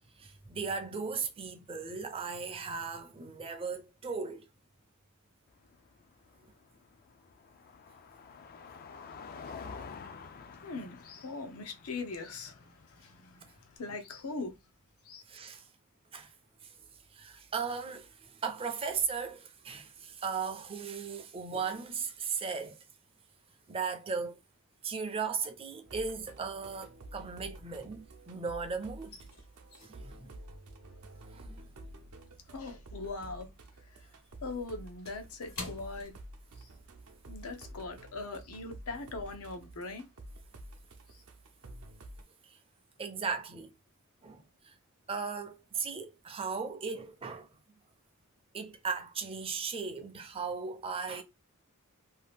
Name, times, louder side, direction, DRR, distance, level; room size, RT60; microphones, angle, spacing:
voice 1, 0.2-4.5 9.4-9.5 15.3-15.7 16.1-16.3 16.6-16.7 17.1-22.8 23.7-24.4 24.8-29.1 29.8-30.4 31.2-31.6 42.5-42.6 43.0-43.7 44.2-44.7 45.1-47.5 48.5-51.2, right 5 dB, 25° right, 0.5 m, -37 dB
Car passing by, 5.5-13.8, left 5 dB, 40° left, 0.3 m, -49 dB
voice 2, 9.5-14.5 15.0-15.2 32.5-33.5 33.8-34.1 34.4-36.1 36.6-36.7 37.3-40.1 41.1-41.2, left 3 dB, 85° left, 0.7 m, -41 dB
sound 1, 25.8-42.2, right 1 dB, 80° right, 0.6 m, -50 dB
sound 2, 28.8-33.3 33.6-36.9 37.2-37.4 37.9-38.1, left 2 dB, 65° left, 1.4 m, -50 dB
2.8 x 2.4 x 3.4 m
head